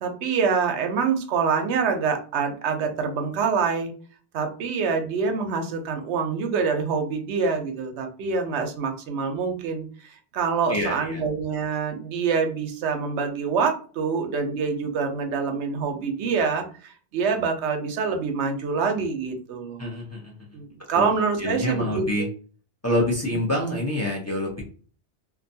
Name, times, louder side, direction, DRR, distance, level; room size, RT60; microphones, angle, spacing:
voice 1, 0.0-3.9 4.3-19.8 20.5-22.0, right 5 dB, 90° right, 5 dB, 0.9 m, -26 dB
voice 2, 10.7-11.2 19.8-20.5 20.9-21.1 21.4-22.3 22.8-24.6, left 1 dB, 20° left, -3 dB, 0.5 m, -26 dB
2.5 x 2.2 x 2.6 m, 0.41 s
omnidirectional pair, 1.1 m